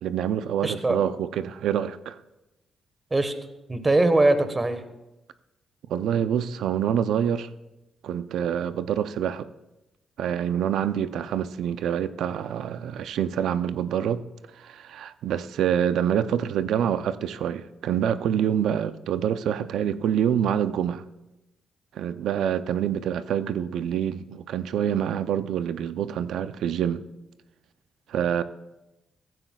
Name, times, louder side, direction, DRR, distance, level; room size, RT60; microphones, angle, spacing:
voice 1, 0.0-2.2 5.9-7.5 8.0-9.5 10.2-14.2 14.5-21.0 21.9-27.0 28.1-28.4, right 9 dB, 85° right, 0.5 m, -26 dB
voice 2, 0.6-1.0 3.1-3.3 3.7-4.8, right 2 dB, 25° right, 1.3 m, -21 dB
15.0 x 15.0 x 2.3 m
cardioid pair, 70°, 0 cm